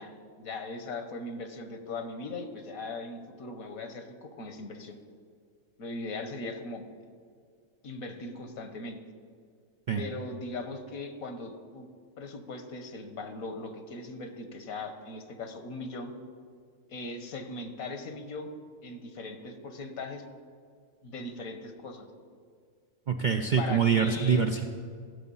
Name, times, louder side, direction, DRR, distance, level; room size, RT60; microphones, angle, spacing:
voice 1, 0.0-5.0 5.8-6.9 7.8-9.0 9.9-11.9 12.2-16.1 16.9-18.5 18.8-20.2 21.0-22.1 23.6-24.4, left 2 dB, 85° left, 7 dB, 1.5 m, -39 dB
voice 2, 23.1-24.7, right 7 dB, 60° right, 5 dB, 0.5 m, -25 dB
15.0 x 7.8 x 5.5 m, 2.1 s
omnidirectional pair, 1.4 m